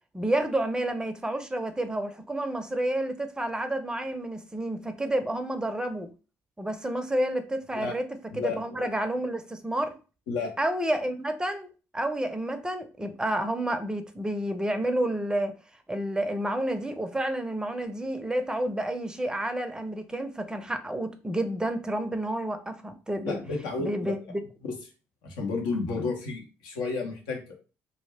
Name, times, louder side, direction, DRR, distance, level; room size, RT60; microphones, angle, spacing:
voice 1, 0.1-6.1 6.6-8.1 8.3-9.9 10.6-15.5 15.9-23.4 23.8-24.4, right 1 dB, 10° right, 0.5 m, -30 dB
voice 2, 8.3-8.9 10.3-10.5 23.2-24.1 24.6-24.7 25.2-27.5, left 4 dB, 75° left, 0.7 m, -32 dB
2.2 x 2.1 x 3.4 m
hypercardioid pair, 55°, 7 cm